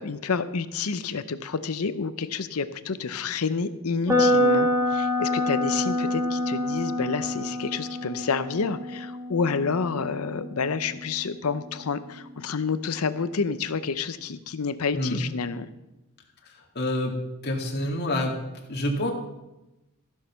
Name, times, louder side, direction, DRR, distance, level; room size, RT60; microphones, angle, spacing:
voice 1, 0.0-15.7, left 5 dB, 90° left, 13 dB, 0.7 m, -29 dB
sound 1, 4.1-12.0, left 1 dB, 15° right, 2.1 m, -27 dB
voice 2, 16.8-17.1 17.4-18.4 18.7-19.1, left 1 dB, 50° left, 0 dB, 2.1 m, -27 dB
14.5 x 6.5 x 5.8 m, 0.99 s
head